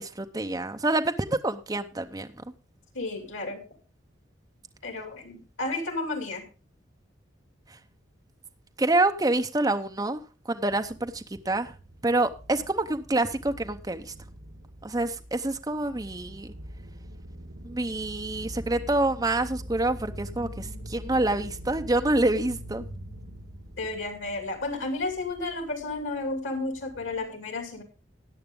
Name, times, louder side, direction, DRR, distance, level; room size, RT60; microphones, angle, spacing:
voice 1, 0.0-2.4 8.8-11.7 12.0-14.1 14.8-16.5 17.6-22.9, right 2 dB, 20° right, 7 dB, 0.7 m, -27 dB
voice 2, 2.9-3.6 4.8-6.5 23.8-27.8, left 2 dB, 85° left, 6 dB, 2.7 m, -32 dB
sound 1, 10.7-27.3, equal, 70° right, 1.6 m, -44 dB
sound 2, 19.9-24.6, equal, 35° left, 3.2 m, -47 dB
14.0 x 9.3 x 3.7 m, 0.33 s
head